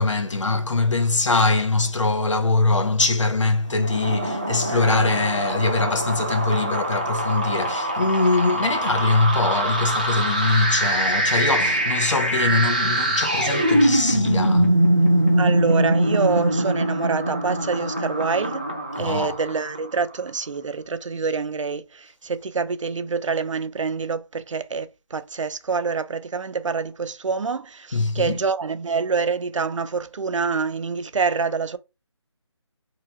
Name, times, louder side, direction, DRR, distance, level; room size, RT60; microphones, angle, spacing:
voice 1, 0.0-14.8 19.0-19.4 27.9-28.4, left 3 dB, 85° left, 0.8 m, -22 dB
sound 1, 3.7-20.0, right 1 dB, 15° right, 0.3 m, -23 dB
voice 2, 4.6-5.1 15.4-18.6 19.0-31.8, right 5 dB, 90° right, 0.5 m, -26 dB
2.8 x 2.3 x 2.8 m
figure-of-eight pair, 170°, 15 cm